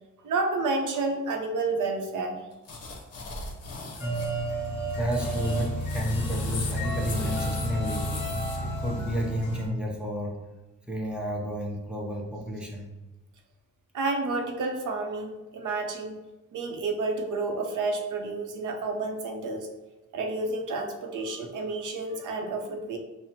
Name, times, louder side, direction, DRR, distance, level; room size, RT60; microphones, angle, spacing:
voice 1, 0.2-2.4 13.9-16.2 16.5-19.7 20.1-23.0, right 3 dB, 70° right, 3 dB, 0.6 m, -30 dB
sound 1, 2.6-4.3 4.9-8.6, left 3 dB, 50° left, 0.7 m, -38 dB
sound 2, 4.0-9.7, right 1 dB, 20° left, 1.1 m, -31 dB
voice 2, 5.0-8.1 8.6-10.4 10.9-12.9, equal, 5° right, -2 dB, 0.5 m, -31 dB
5.7 x 2.0 x 2.7 m, 1.1 s
wide cardioid pair, 155°, 31 cm